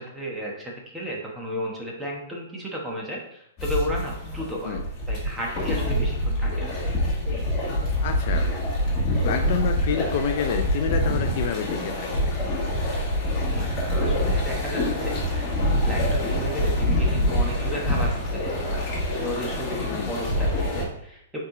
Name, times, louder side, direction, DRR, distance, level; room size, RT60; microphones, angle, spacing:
voice 1, 0.0-4.8 5.1-6.8 13.5-15.5 15.8-18.9 19.2-21.4, equal, 5° right, -2 dB, 1.1 m, -33 dB
sound 1, 3.6-20.8, equal, 15° left, 1.7 m, -25 dB
voice 2, 8.0-8.5 9.2-12.3 19.9-20.2, left 8 dB, 40° left, 6 dB, 0.4 m, -29 dB
5.6 x 4.7 x 3.7 m, 0.74 s
hypercardioid pair, 170°, 0 cm